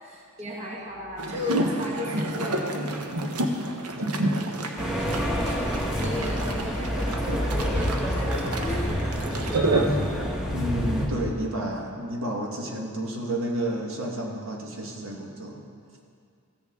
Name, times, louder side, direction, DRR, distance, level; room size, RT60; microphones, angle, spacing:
voice 1, 0.0-3.1 5.0-5.2 5.5-9.1, left 1 dB, 30° right, -2 dB, 1.1 m, -35 dB
sound 1, 1.2-10.1, right 2 dB, 85° right, 0.9 m, -29 dB
voice 2, 4.1-4.5 9.9-10.0 10.5-15.6, right 1 dB, 60° right, 0 dB, 1.3 m, -31 dB
sound 2, 4.8-11.1, equal, 5° right, 1.1 m, -27 dB
14.5 x 8.3 x 3.6 m, 2.2 s
head